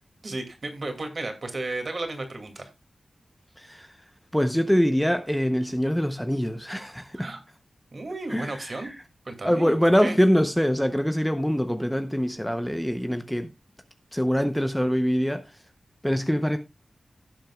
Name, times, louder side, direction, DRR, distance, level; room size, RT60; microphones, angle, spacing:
voice 1, 0.2-2.7 7.2-7.4 7.9-8.9 9.3-9.8 10.0-10.2, right 2 dB, 45° right, 2.3 m, -33 dB
voice 2, 3.6-3.9 4.3-7.3 8.3-9.0 9.4-13.5 14.1-15.4 16.0-16.6, equal, 5° left, 0.8 m, -24 dB
17.0 x 7.4 x 2.3 m
wide cardioid pair, 105°, 0 cm